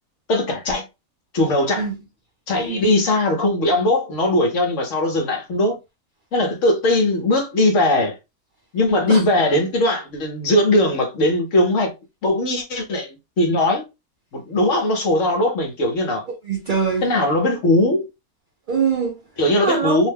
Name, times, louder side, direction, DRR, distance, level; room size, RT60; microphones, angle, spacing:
voice 1, 0.3-0.9 1.3-1.9 2.5-5.8 6.3-8.2 8.7-11.9 12.2-13.8 14.3-16.2 17.0-18.1 19.4-20.1, left 1 dB, 60° left, 1.1 m, -19 dB
voice 2, 16.3-17.1 18.7-19.3 19.6-20.1, right 5 dB, 55° right, 0.5 m, -23 dB
2.8 x 2.1 x 3.2 m
omnidirectional pair, 1.6 m